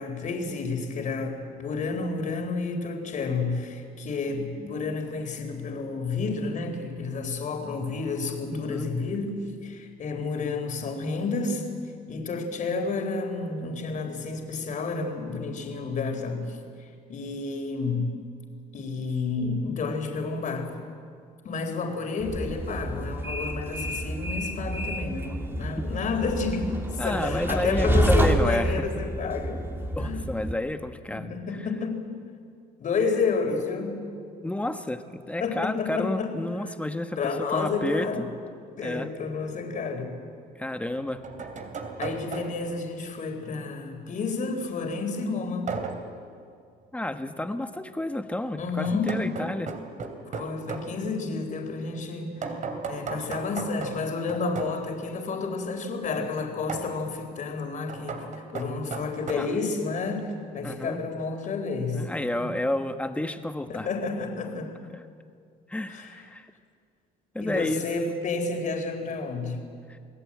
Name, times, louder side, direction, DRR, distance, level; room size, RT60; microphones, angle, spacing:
voice 1, 0.0-11.7 12.1-18.2 18.7-20.7 21.4-29.7 30.0-30.3 31.1-32.1 32.8-34.1 35.4-36.4 37.2-38.3 38.8-40.2 42.0-45.7 48.6-49.3 50.3-52.6 52.9-62.1 62.3-62.5 63.7-64.8 65.9-66.2 67.4-69.6, left 4 dB, 50° left, 5 dB, 4.1 m, -30 dB
voice 2, 8.5-8.9 27.0-28.8 30.0-31.4 34.4-38.1 38.8-39.1 40.6-41.2 46.9-49.7 59.3-59.5 60.6-61.0 61.9-63.9 64.9-65.0 65.7-66.5 67.3-67.8, left 1 dB, 10° left, 7 dB, 1.4 m, -30 dB
Train, 22.2-30.5, right 1 dB, 15° right, 2.6 m, -28 dB
sound 1, 39.4-39.5 40.8-42.8 45.7-46.2 48.8-50.9 52.4-54.8 56.7-57.0 57.9-59.3, right 5 dB, 45° right, 3.1 m, -36 dB
28.5 x 19.0 x 8.7 m, 2.2 s
cardioid pair, 110°, 17 cm